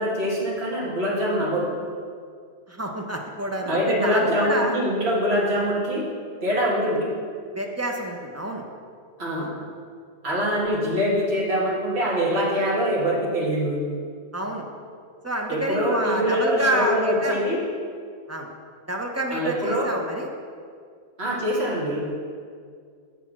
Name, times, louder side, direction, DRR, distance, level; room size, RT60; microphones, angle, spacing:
voice 1, 0.0-1.7 3.6-6.0 6.4-7.1 9.2-9.5 10.2-13.8 15.5-17.6 19.3-19.9 21.2-22.0, equal, 60° right, -5 dB, 1.9 m, -24 dB
voice 2, 2.7-4.7 7.5-8.6 9.3-9.5 14.3-14.7 15.2-17.4 18.3-18.5 18.9-20.3, right 1 dB, 20° right, 1 dB, 0.4 m, -28 dB
6.9 x 4.7 x 6.0 m, 2.1 s
omnidirectional pair, 1.2 m